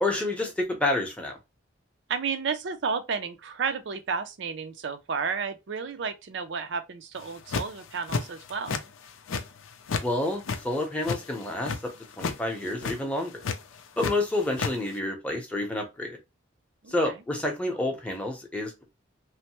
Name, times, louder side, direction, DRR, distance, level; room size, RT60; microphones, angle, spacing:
voice 1, 0.0-1.4 10.0-11.7 12.2-13.4 14.0-16.2 16.9-18.8, left 2 dB, 5° left, 0.7 m, -29 dB
voice 2, 2.1-8.8 16.8-17.1, right 5 dB, 60° right, 0.4 m, -32 dB
sound 1, 7.2-7.8 8.1-8.8 9.1-10.1 10.3-11.8 12.1-12.4 12.7-13.0 13.4-14.1 14.4-14.7, left 5 dB, 90° left, 0.5 m, -30 dB
3.1 x 2.1 x 2.9 m
head